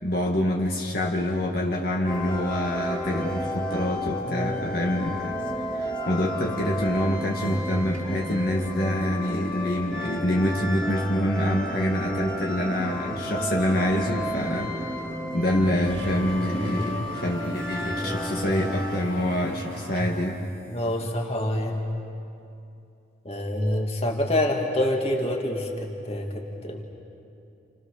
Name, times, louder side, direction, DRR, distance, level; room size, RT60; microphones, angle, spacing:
voice 1, 0.0-5.2 5.7-14.7 15.3-20.4, equal, 50° left, -1 dB, 2.1 m, -26 dB
sound 1, 2.0-19.0, equal, 5° left, 2.4 m, -32 dB
voice 2, 4.2-4.6 20.7-21.8 23.2-26.8, left 1 dB, 30° left, 1 dB, 2.6 m, -27 dB
sound 2, 15.9-21.2, equal, 70° right, 2.2 m, -37 dB
30.0 x 29.5 x 6.8 m, 2.7 s
head